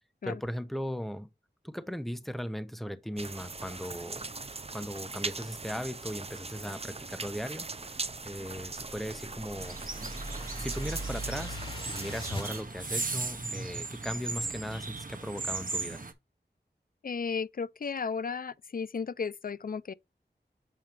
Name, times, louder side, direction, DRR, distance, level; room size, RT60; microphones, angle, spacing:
voice 1, 0.2-1.3 1.6-4.3 4.7-7.9 8.2-9.8 10.6-11.6 11.9-16.0, equal, ahead, 0.9 m, -38 dB
sound 1, 3.2-12.6, right 3 dB, 35° right, 0.5 m, -40 dB
sound 2, 8.8-12.5, equal, 30° left, 3.4 m, -40 dB
sound 3, 9.6-16.1, right 3 dB, 50° right, 1.1 m, -37 dB
voice 2, 17.0-19.9, left 5 dB, 55° left, 0.4 m, -34 dB
7.6 x 4.3 x 3.4 m
wide cardioid pair, 45°, 18 cm